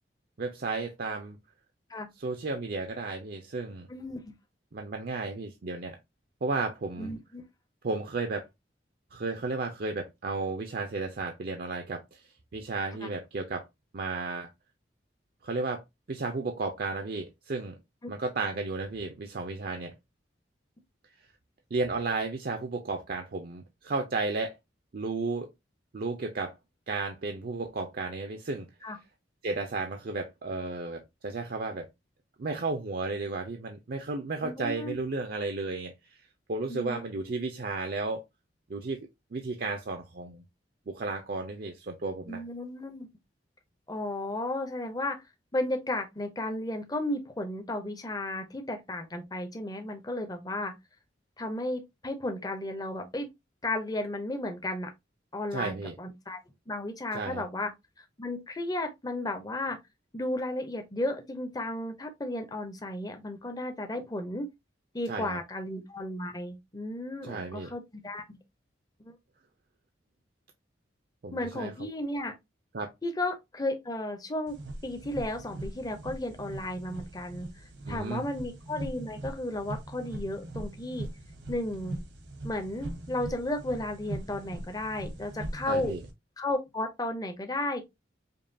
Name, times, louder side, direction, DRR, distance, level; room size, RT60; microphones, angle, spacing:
voice 1, 0.4-1.4 2.2-3.9 4.7-6.0 6.4-7.1 7.8-8.5 9.1-12.2 12.5-13.7 13.9-14.5 15.4-15.8 16.1-17.7 18.1-19.9 21.7-24.6 24.9-25.5 25.9-26.5 26.9-28.7 29.4-31.9 32.4-36.2 36.5-38.2 38.7-39.0 39.3-40.4 40.9-42.4 55.5-56.0 57.1-57.4 65.1-65.4 67.2-67.7 71.2-71.9 72.7-72.9 77.9-78.2 85.6-86.0, right 3 dB, 55° right, 0.5 m, -33 dB
voice 2, 3.9-4.3 7.0-7.4 13.0-13.1 28.8-29.0 34.4-35.0 36.7-37.0 42.3-43.1 43.9-45.2 45.5-50.7 51.4-53.3 53.6-54.9 55.3-56.4 56.7-57.7 58.0-59.8 60.1-64.5 64.9-68.4 69.0-69.1 71.3-72.3 73.0-77.5 77.9-81.1 81.5-82.0 82.4-86.0 86.4-87.8, left 1 dB, 20° left, 0.6 m, -34 dB
sound 1, 74.5-86.1, right 1 dB, 75° right, 1.0 m, -41 dB
5.2 x 2.3 x 2.6 m
head